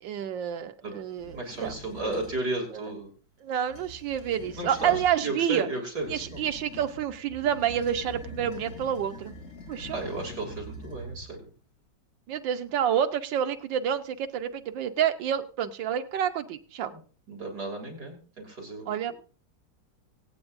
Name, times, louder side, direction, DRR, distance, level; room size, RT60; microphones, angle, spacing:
voice 1, 0.0-2.2 2.7-2.9 3.4-5.7 6.1-9.3 9.7-10.0 12.3-16.9 18.9-19.1, right 9 dB, 85° right, 8 dB, 1.6 m, -29 dB
sound 1, 1.1-2.4 3.6-5.2 6.0-11.5, equal, 40° left, 3.6 m, -44 dB
voice 2, 1.4-3.1 4.6-6.4 9.9-11.4 16.9-17.0 17.3-18.9, right 2 dB, 60° right, 1 dB, 3.4 m, -34 dB
24.0 x 8.7 x 2.6 m, 0.40 s
omnidirectional pair, 2.0 m